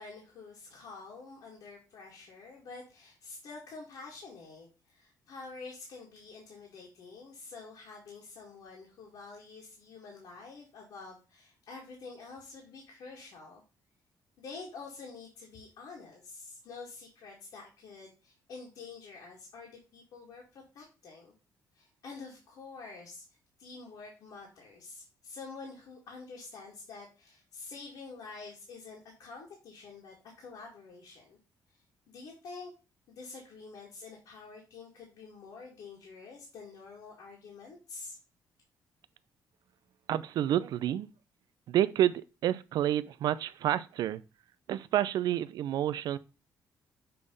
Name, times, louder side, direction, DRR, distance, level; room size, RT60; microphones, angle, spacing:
voice 1, 0.0-13.6 14.4-21.3 21.7-23.2 23.6-31.4 32.1-32.7 33.1-38.2, left 4 dB, 75° left, 2.2 m, -48 dB
voice 2, 40.1-41.1 41.7-44.2 44.7-46.2, right 12 dB, 75° right, 0.5 m, -29 dB
6.9 x 3.5 x 5.3 m
cardioid pair, 120°, 7 cm